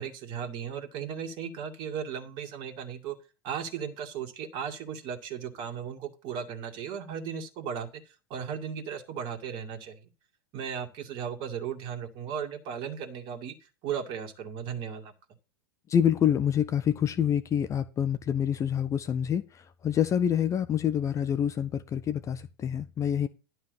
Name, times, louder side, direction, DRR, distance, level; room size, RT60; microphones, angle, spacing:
voice 1, 0.0-3.2 3.4-7.9 8.3-10.0 10.5-13.5 13.8-15.1, right 7 dB, 40° right, 2.0 m, -36 dB
voice 2, 15.9-23.3, left 9 dB, 25° left, 0.7 m, -27 dB
11.5 x 5.5 x 5.5 m
figure-of-eight pair, 90°, 13 cm